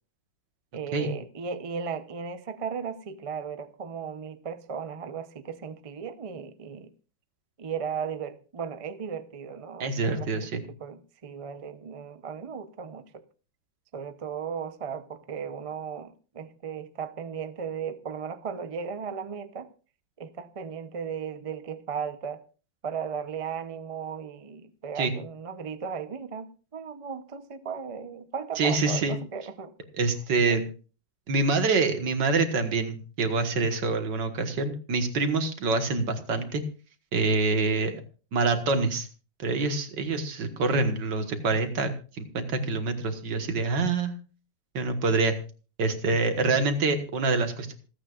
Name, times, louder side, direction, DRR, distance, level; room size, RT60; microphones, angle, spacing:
voice 1, 0.7-6.9 7.6-13.2 13.9-19.7 20.2-22.4 22.8-29.7 30.5-30.7, right 6 dB, 50° right, 0.3 m, -36 dB
voice 2, 9.8-10.6 25.0-25.1 28.6-29.2 29.9-30.6 31.3-36.6 37.1-37.9 38.3-39.1 39.4-44.2 44.7-45.4 45.8-47.7, right 3 dB, 70° right, 2.1 m, -26 dB
27.0 x 9.0 x 2.4 m
omnidirectional pair, 2.0 m